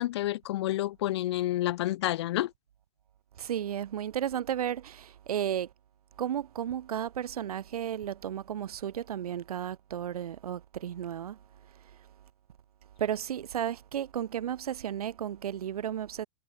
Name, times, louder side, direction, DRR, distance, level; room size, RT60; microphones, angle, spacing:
voice 1, 0.0-2.5, left 15 dB, 45° left, 6.4 m, -29 dB
voice 2, 3.4-5.7 6.2-11.4 13.0-16.3, right 10 dB, 75° right, 7.4 m, -33 dB
supercardioid pair, 180°, 19 cm